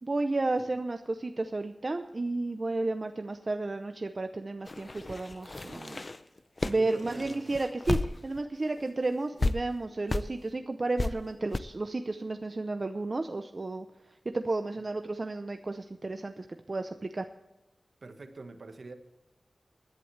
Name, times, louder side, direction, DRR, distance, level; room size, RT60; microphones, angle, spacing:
voice 1, 0.0-6.0 6.6-8.0 8.2-13.9 14.3-17.2, right 2 dB, 40° right, 6 dB, 0.7 m, -32 dB
sound 1, 4.7-8.5 8.8-8.9 9.4-9.5 10.1-10.3 11.0-11.1 11.5-11.6, left 2 dB, 35° left, 0.6 m, -32 dB
voice 2, 6.6-7.5 18.0-18.9, right 3 dB, 65° right, 7 dB, 1.5 m, -45 dB
19.5 x 11.0 x 3.3 m, 0.93 s
wide cardioid pair, 105°, 0 cm